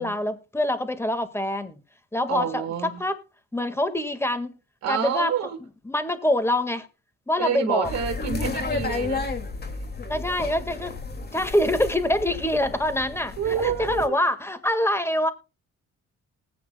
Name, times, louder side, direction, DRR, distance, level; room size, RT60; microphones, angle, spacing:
voice 1, 0.0-1.8 2.1-2.6 3.0-3.2 3.5-4.5 4.9-5.3 5.9-6.9 7.3-7.9 10.1-10.9 11.3-15.3, left 1 dB, 10° left, 1.8 m, -25 dB
voice 2, 2.3-3.0 4.8-5.6 7.4-9.3 9.7-9.8 13.4-14.1, right 8 dB, 60° right, 1.8 m, -28 dB
sound 1, 7.8-14.1, left 3 dB, 35° left, 2.3 m, -32 dB
19.5 x 8.7 x 2.3 m
cardioid pair, 90°, 30 cm